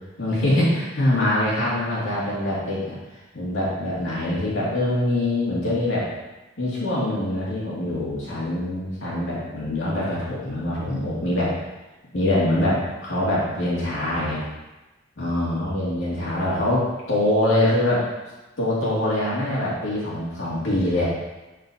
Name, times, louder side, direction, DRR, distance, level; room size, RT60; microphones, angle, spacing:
voice 1, 0.2-3.0 3.3-6.1 6.6-11.5 12.1-14.4 15.2-18.1 18.6-21.0, left 1 dB, 80° left, -7 dB, 2.2 m, -24 dB
10.0 x 4.4 x 2.7 m, 1.1 s
head